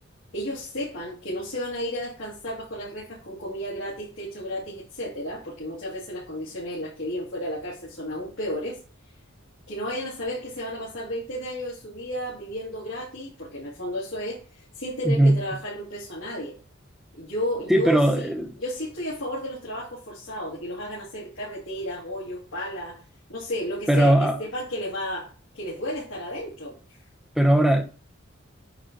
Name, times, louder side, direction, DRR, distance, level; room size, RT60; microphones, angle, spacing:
voice 1, 0.3-8.8 9.7-16.5 17.1-18.3 18.6-23.0 23.3-26.8, equal, 85° left, 2.7 m, -33 dB
voice 2, 15.0-15.4 17.7-18.5 23.9-24.4 27.4-27.8, right 1 dB, ahead, 0.8 m, -19 dB
8.7 x 3.1 x 3.8 m
head